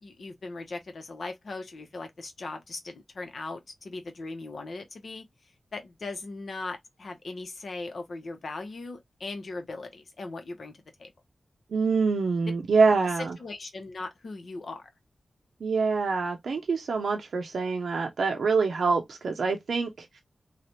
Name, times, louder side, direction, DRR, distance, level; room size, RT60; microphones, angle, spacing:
voice 1, 0.0-5.2 5.7-10.7 11.0-11.1 13.4-14.9, left 3 dB, 75° left, 0.9 m, -39 dB
voice 2, 11.7-13.3 15.6-20.2, right 4 dB, 90° right, 0.5 m, -25 dB
3.1 x 2.4 x 2.6 m
wide cardioid pair, 70°, 0 cm